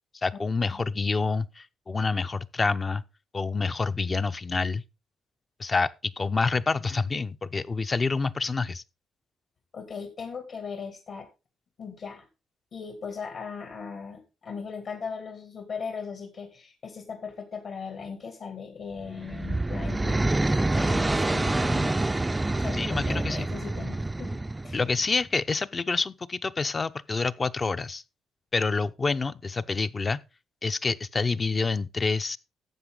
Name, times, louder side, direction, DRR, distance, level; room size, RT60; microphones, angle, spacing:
voice 1, 0.2-3.0 3.3-4.8 5.6-8.8 22.7-23.5 24.7-28.0 28.5-30.2 30.6-32.4, left 4 dB, 30° left, 0.6 m, -27 dB
voice 2, 9.7-11.3 11.8-12.3 12.7-22.1 22.6-24.8, left 5 dB, 60° left, 2.5 m, -38 dB
sound 1, 19.0-25.1, right 2 dB, 15° right, 0.4 m, -27 dB
12.0 x 7.9 x 3.9 m
cardioid pair, 90°, 0 cm